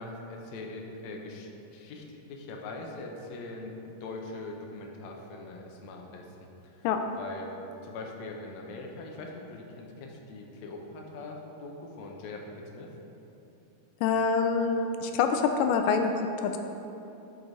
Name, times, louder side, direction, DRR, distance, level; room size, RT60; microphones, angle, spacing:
voice 1, 0.0-3.7 4.0-6.9 7.2-7.5 7.8-12.9, left 2 dB, 70° left, 1 dB, 1.8 m, -42 dB
voice 2, 14.0-16.1 16.4-16.6, left 5 dB, 85° left, 6 dB, 2.2 m, -25 dB
12.0 x 5.0 x 4.0 m, 2.9 s
omnidirectional pair, 3.8 m